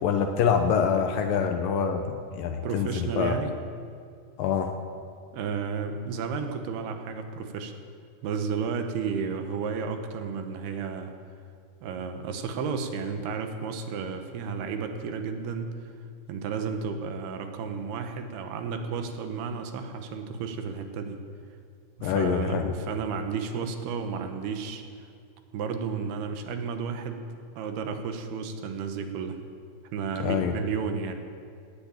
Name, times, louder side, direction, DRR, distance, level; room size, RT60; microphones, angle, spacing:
voice 1, 0.0-3.4 4.4-4.7 22.0-22.7 30.2-30.6, left 7 dB, 75° left, 5 dB, 2.3 m, -25 dB
voice 2, 2.6-3.5 5.3-7.7 8.2-11.1 11.8-15.9 16.3-21.2 22.0-24.8 25.5-27.3 27.6-29.4 29.9-31.1, right 6 dB, 80° right, 6 dB, 3.1 m, -32 dB
18.5 x 8.7 x 8.9 m, 2.3 s
omnidirectional pair, 4.6 m